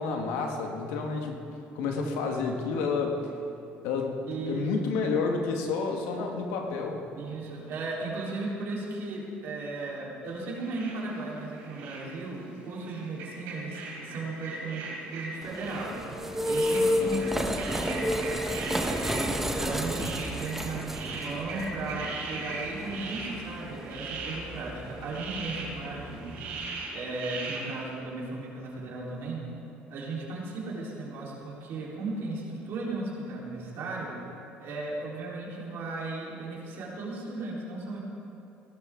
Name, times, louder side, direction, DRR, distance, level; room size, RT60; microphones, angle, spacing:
voice 1, 0.0-1.4 1.7-3.2 3.8-7.0, left 4 dB, 85° left, 2 dB, 1.6 m, -30 dB
voice 2, 4.3-5.0 7.2-16.0 16.5-18.0 18.8-26.3 26.9-29.4 29.9-34.2 34.6-38.0, right 3 dB, 65° right, -5 dB, 3.8 m, -36 dB
sound 1, 10.3-27.9, right 3 dB, 90° right, 3.5 m, -40 dB
sound 2, 15.4-26.8, equal, 5° right, 1.1 m, -32 dB
17.5 x 12.0 x 3.8 m, 2.7 s
supercardioid pair, 95°, 4 cm